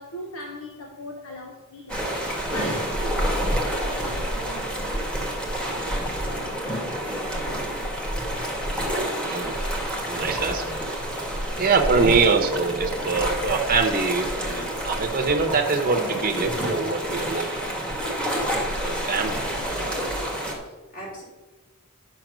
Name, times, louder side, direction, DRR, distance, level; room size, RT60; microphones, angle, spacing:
voice 1, 0.0-2.1 2.5-4.9 19.6-20.2, left 1 dB, 65° left, 2 dB, 1.0 m, -39 dB
sound 1, 1.9-20.5, equal, 5° left, 1.6 m, -28 dB
voice 2, 7.1-7.9 19.2-19.7 20.7-21.2, right 1 dB, 40° left, -4 dB, 3.6 m, -42 dB
voice 3, 9.2-9.6 10.1-10.6 11.6-17.8 18.8-20.0, right 4 dB, 40° right, 3 dB, 0.9 m, -24 dB
9.0 x 5.7 x 6.1 m, 1.2 s
head